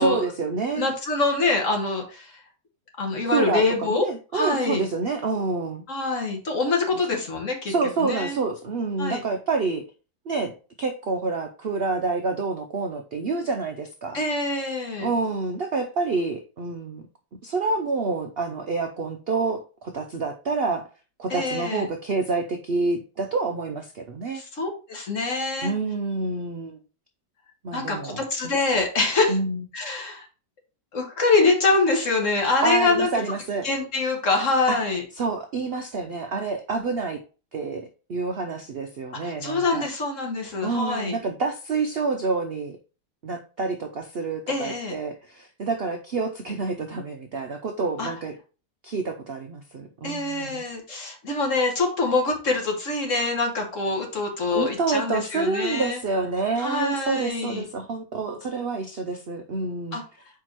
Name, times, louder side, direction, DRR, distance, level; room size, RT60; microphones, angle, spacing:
voice 1, 0.0-0.9 3.3-5.8 7.6-9.8 10.3-14.2 15.0-17.1 17.4-20.9 21.2-24.4 25.6-26.8 27.6-28.5 29.3-29.6 32.6-33.7 34.7-34.8 35.2-37.2 37.5-39.9 40.6-42.8 43.2-48.3 48.8-50.6 54.5-60.0, right 4 dB, 65° right, 5 dB, 0.6 m, -28 dB
voice 2, 0.8-2.4 3.0-4.1 4.3-4.8 5.9-7.7 8.0-8.4 9.0-9.2 14.1-15.1 21.3-21.9 24.3-25.7 27.7-29.4 29.7-30.3 30.9-33.1 33.6-35.0 39.2-41.2 44.5-45.0 48.0-48.1 50.0-56.0 56.6-57.6 59.9-60.0, left 3 dB, 50° left, 2 dB, 1.7 m, -25 dB
4.7 x 4.5 x 4.5 m, 0.35 s
omnidirectional pair, 1.8 m